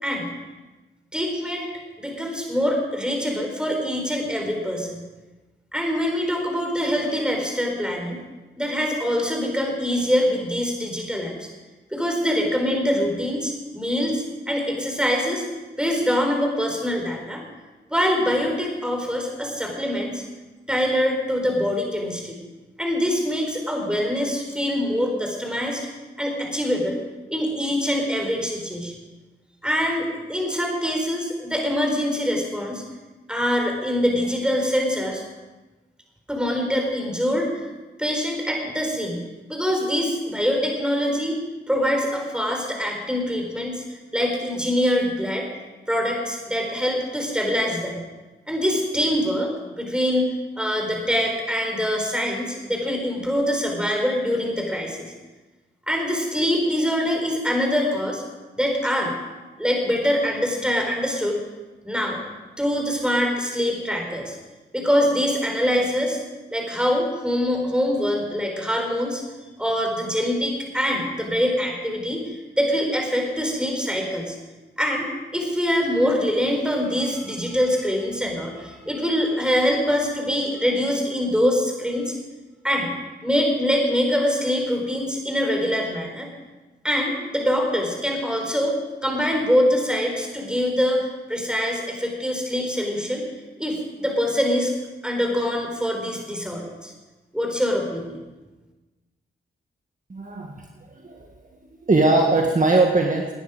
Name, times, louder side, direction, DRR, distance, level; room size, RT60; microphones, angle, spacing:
voice 1, 1.1-1.7 2.0-5.0 5.7-8.2 8.6-11.5 11.9-15.4 15.8-17.4 17.9-20.2 20.7-22.4 22.8-25.9 26.2-27.0 27.3-28.9 29.6-32.8 33.3-35.2 36.3-37.5 38.0-39.2 39.5-41.4 41.7-43.8 44.1-45.5 45.9-48.0 48.5-50.3 50.6-55.1 55.9-58.2 58.6-59.1 59.6-61.4 61.8-62.2 62.6-64.4 64.7-66.2 66.5-69.2 69.6-72.2 72.6-74.4 74.8-75.1 75.3-82.1 82.6-82.9 83.2-86.3 86.8-88.8 89.0-93.3 93.6-94.7 95.0-96.9 97.3-98.2, equal, 5° right, 1 dB, 4.7 m, -24 dB
voice 2, 100.1-100.6 100.9-101.2 101.8-103.3, right 2 dB, 40° right, 1 dB, 1.7 m, -20 dB
19.0 x 9.6 x 5.1 m, 1.2 s
cardioid pair, 50°, 21 cm